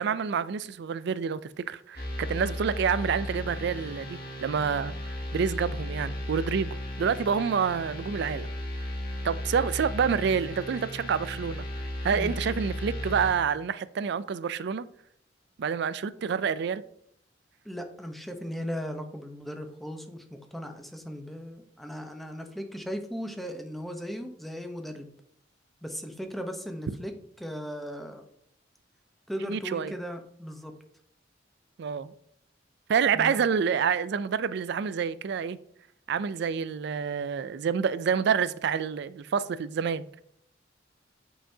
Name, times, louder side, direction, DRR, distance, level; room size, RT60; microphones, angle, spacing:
voice 1, 0.0-4.9 5.3-8.5 9.2-11.6 12.0-14.8 15.6-16.8 29.5-29.9 31.8-32.1 32.9-35.6 36.1-40.2, right 6 dB, 65° right, 0.4 m, -28 dB
sound 1, 2.0-13.3, left 1 dB, 55° left, 1.9 m, -35 dB
voice 2, 17.6-20.2 20.5-25.1 25.8-27.1 27.4-28.3 29.3-30.7 33.1-33.4, equal, ahead, 0.8 m, -37 dB
8.5 x 5.6 x 2.7 m
head